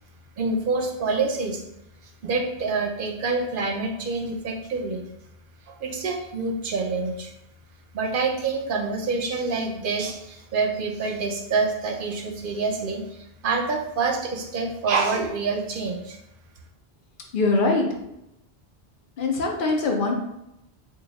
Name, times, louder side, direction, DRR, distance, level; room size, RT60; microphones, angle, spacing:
voice 1, 0.4-1.6 2.2-5.0 5.7-7.3 7.9-16.2, right 4 dB, 60° right, 2 dB, 0.7 m, -27 dB
voice 2, 17.3-17.9 19.2-20.1, left 3 dB, 60° left, 2 dB, 0.7 m, -22 dB
4.1 x 2.3 x 3.4 m, 0.85 s
omnidirectional pair, 1.0 m